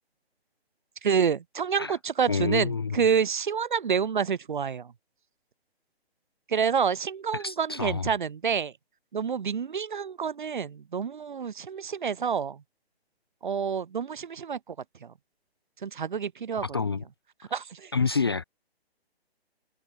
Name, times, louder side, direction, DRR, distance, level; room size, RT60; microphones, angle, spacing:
voice 1, 1.0-4.9 6.5-8.7 9.1-12.6 13.4-14.8 15.0-15.1 15.8-16.6 17.5-17.9, right 7 dB, 50° right, 2.1 m, -28 dB
voice 2, 2.3-3.0 7.3-8.1 16.6-17.0 17.9-18.4, left 5 dB, 25° left, 0.5 m, -28 dB
figure-of-eight pair, 135°, 32 cm